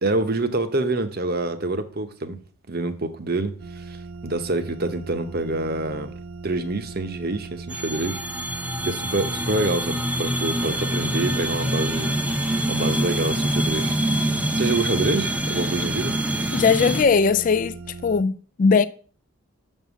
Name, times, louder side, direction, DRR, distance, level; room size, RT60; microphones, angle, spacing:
voice 1, 0.0-2.4 2.7-6.1 6.4-8.5 8.8-12.1 12.7-16.2, right 2 dB, 45° right, 0.9 m, -27 dB
sound 1, 3.6-18.2, right 3 dB, 75° right, 0.5 m, -39 dB
sound 2, 7.7-17.0, right 1 dB, 5° right, 0.7 m, -25 dB
voice 2, 16.5-18.8, left 5 dB, 35° left, 0.3 m, -19 dB
7.2 x 5.5 x 7.1 m
head